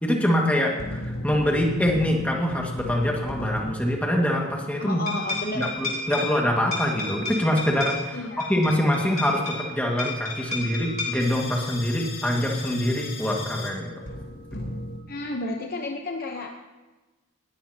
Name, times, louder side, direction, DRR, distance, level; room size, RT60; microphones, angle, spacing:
voice 1, 0.0-8.2 8.5-13.9, left 1 dB, 5° left, 0 dB, 1.8 m, -25 dB
sound 1, 0.7-4.3 5.1-15.0, left 2 dB, 70° left, 4.1 m, -34 dB
voice 2, 4.8-5.7 8.1-8.5 15.1-16.5, left 2 dB, 45° left, 2 dB, 0.9 m, -32 dB
20.0 x 16.5 x 2.9 m, 1.2 s
head